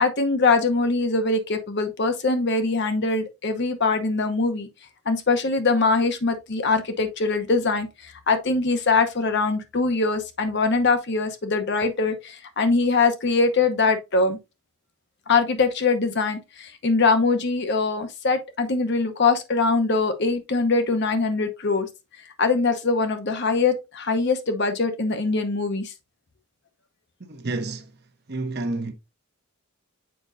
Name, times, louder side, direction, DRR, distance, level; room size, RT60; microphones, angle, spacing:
voice 1, 0.0-4.7 5.1-14.4 15.3-21.9 22.4-25.9, left 3 dB, 55° left, 0.9 m, -22 dB
voice 2, 27.2-27.9 28.3-28.9, right 2 dB, 50° right, 0.9 m, -29 dB
7.0 x 5.1 x 2.6 m
head